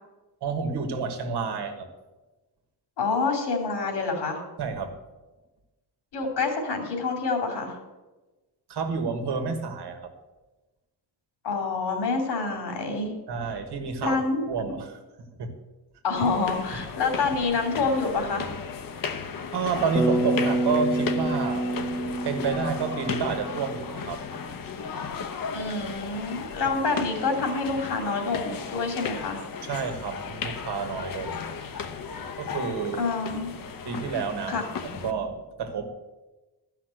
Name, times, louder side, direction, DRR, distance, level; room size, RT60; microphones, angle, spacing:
voice 1, 0.4-1.9 4.6-5.0 8.7-10.1 13.3-14.2 14.5-15.0 15.4-15.5 19.5-21.7 22.2-24.2 29.7-31.4 32.4-33.0 33.8-34.6 34.9-35.9, right 5 dB, 75° right, 6 dB, 1.6 m, -29 dB
voice 2, 3.0-4.4 6.1-7.8 11.4-13.1 14.0-14.4 16.0-18.5 25.5-29.4 33.0-33.6 34.5-34.6, left 4 dB, 80° left, 3 dB, 2.7 m, -27 dB
sound 1, 16.2-35.1, left 6 dB, 55° left, 0.9 m, -35 dB
Bass guitar, 19.9-24.1, right 1 dB, 5° left, 0.9 m, -28 dB
12.5 x 5.8 x 7.7 m, 1.1 s
wide cardioid pair, 180°, 40 cm